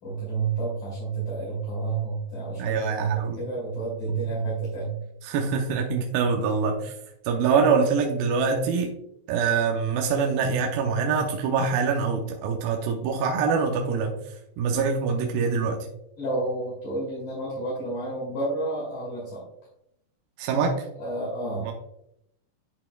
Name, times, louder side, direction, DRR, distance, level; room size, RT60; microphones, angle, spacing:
voice 1, 0.0-5.0 16.2-19.4 21.0-21.7, right 3 dB, 60° left, -7 dB, 3.5 m, -30 dB
voice 2, 2.6-3.4 5.3-6.9 7.3-8.9 9.3-14.1 14.6-15.9 20.4-20.8 21.7-21.8, right 5 dB, 85° right, 1 dB, 2.4 m, -24 dB
11.0 x 4.0 x 2.2 m, 0.77 s
omnidirectional pair, 4.1 m